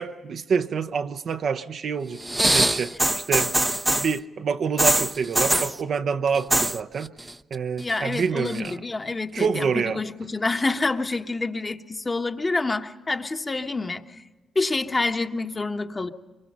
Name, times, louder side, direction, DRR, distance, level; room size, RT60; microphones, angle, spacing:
voice 1, 0.0-2.9 3.3-3.5 3.9-7.1 7.5-8.8 9.3-10.0, right 6 dB, 65° right, 8 dB, 0.9 m, -27 dB
sound 1, 2.2-4.2 4.8-5.8 6.3-6.8 7.0-7.5 7.9-8.7 9.4-9.5, right 1 dB, 15° right, 0.7 m, -23 dB
voice 2, 7.8-14.1 14.5-16.1, left 3 dB, 35° left, 6 dB, 1.4 m, -27 dB
24.5 x 22.5 x 5.5 m, 1.2 s
hypercardioid pair, 40°, 0 cm